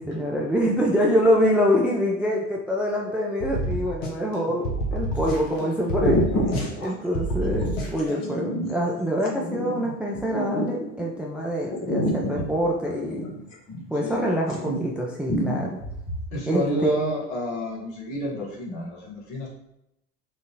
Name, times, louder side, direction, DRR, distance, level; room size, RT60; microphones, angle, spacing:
voice 1, 0.0-6.2 6.8-13.2 13.9-15.8 16.5-16.9, equal, 5° right, -2 dB, 0.4 m, -25 dB
sound 1, 3.4-4.4 4.6-5.6 5.9-6.9 7.1-8.1, right 1 dB, 75° left, 0.9 m, -28 dB
sound 2, 4.5-4.9 5.6-5.7 5.9-11.2 11.7-14.2 14.4-15.0 15.3-16.3, equal, 45° left, 1.0 m, -29 dB
voice 2, 14.0-14.3 16.3-19.5, equal, 60° left, -2 dB, 1.2 m, -29 dB
3.7 x 2.5 x 2.8 m, 0.82 s
figure-of-eight pair, 75°, 38 cm